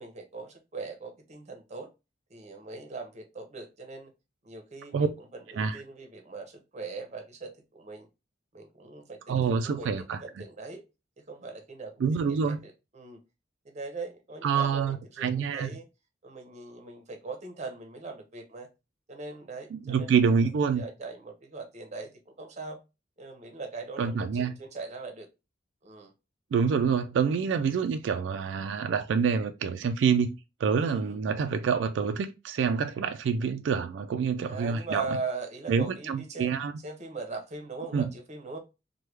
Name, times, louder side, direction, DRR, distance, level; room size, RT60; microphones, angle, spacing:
voice 1, 0.0-1.9 2.3-4.1 4.4-8.1 8.5-10.8 11.3-13.2 13.6-15.9 16.2-18.7 19.1-20.2 20.7-22.8 23.2-25.3 25.8-26.1 27.5-27.6 30.7-31.2 34.4-36.5 36.8-38.6, right 3 dB, 40° right, 0.7 m, -40 dB
voice 2, 9.3-10.2 12.0-12.6 14.4-15.7 19.7-20.8 24.0-24.5 26.5-30.3 30.6-35.1 35.7-36.7 37.9-38.1, right 6 dB, 85° right, 0.3 m, -27 dB
3.1 x 2.2 x 3.2 m
head